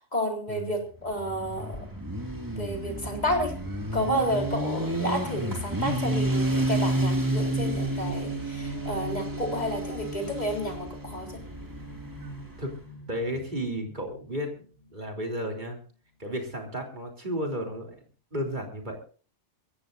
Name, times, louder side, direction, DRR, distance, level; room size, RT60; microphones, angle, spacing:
voice 1, 0.0-1.9 2.5-3.5 3.9-11.4, equal, 35° left, 1 dB, 4.1 m, -31 dB
Motorcycle, 1.0-12.7, right 1 dB, 15° right, 2.2 m, -30 dB
sound 1, 9.2-15.8, left 1 dB, 70° right, 6.0 m, -49 dB
voice 2, 13.1-14.5 14.9-15.8 16.2-18.0 18.3-19.0, equal, 40° right, 2 dB, 3.5 m, -33 dB
23.5 x 15.5 x 2.6 m, 0.39 s
omnidirectional pair, 1.2 m